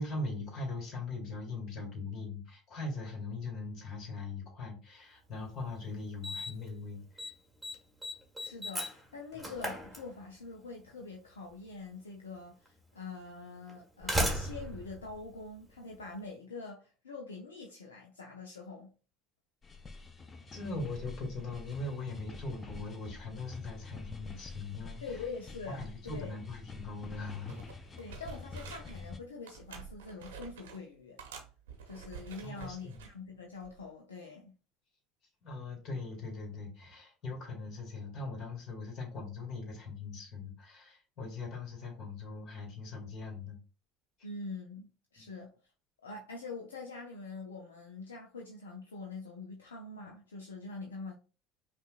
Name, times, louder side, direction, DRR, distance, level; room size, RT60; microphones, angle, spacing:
voice 1, 0.0-7.0 20.5-25.0 25.7-27.6 28.1-28.2 32.4-33.0 35.4-43.6 45.2-45.3, left 3 dB, 45° left, 2.0 m, -40 dB
Slam, 5.4-5.5 6.2-6.7 7.0-7.3 7.6-10.5 11.7-11.8 12.6-12.7 13.7-16.0, equal, ahead, 1.4 m, -36 dB
voice 2, 8.4-18.9 25.0-26.4 28.0-31.2 31.9-34.6 44.2-45.5 46.0-51.1, left 3 dB, 80° left, 0.6 m, -44 dB
sound 1, 19.6-29.2, left 4 dB, 25° left, 0.6 m, -47 dB
sound 2, 27.1-27.2 27.5-29.0 29.4-30.8 31.2-33.1 33.6-33.9, right 7 dB, 75° right, 0.8 m, -49 dB
5.4 x 2.4 x 2.4 m
figure-of-eight pair, 65°, 0 cm